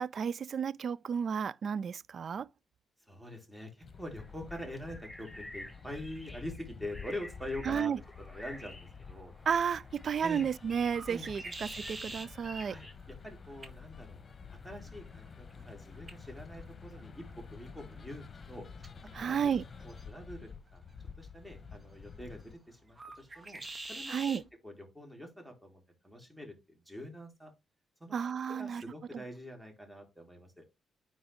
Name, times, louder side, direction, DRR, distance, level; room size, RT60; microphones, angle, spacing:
voice 1, 0.0-2.5 7.7-8.0 9.5-12.7 19.1-19.6 24.1-24.4 28.1-28.8, right 7 dB, 55° right, 0.4 m, -32 dB
voice 2, 3.1-9.3 10.2-10.4 11.1-11.7 12.5-14.2 14.6-18.7 19.2-19.6 19.8-20.8 21.2-23.6 23.9-26.6 26.9-27.5 28.0-28.2 28.5-30.6, left 1 dB, 10° right, 3.9 m, -45 dB
sound 1, 3.8-22.5, left 5 dB, 45° left, 1.0 m, -50 dB
sound 2, 4.2-12.9, equal, 5° left, 3.7 m, -50 dB
sound 3, 9.1-24.5, right 2 dB, 30° right, 1.7 m, -50 dB
9.4 x 4.0 x 3.6 m
hypercardioid pair, 45°, 0 cm